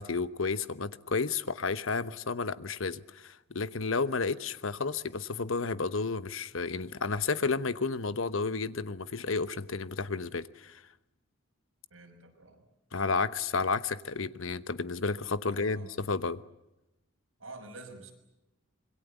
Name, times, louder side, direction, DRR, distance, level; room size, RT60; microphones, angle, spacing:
voice 1, 0.0-10.8 12.9-16.4, left 4 dB, 75° left, 1.0 m, -32 dB
voice 2, 11.9-12.6 15.4-15.9 17.4-18.1, right 2 dB, 75° right, 6.1 m, -48 dB
26.5 x 22.0 x 8.2 m
head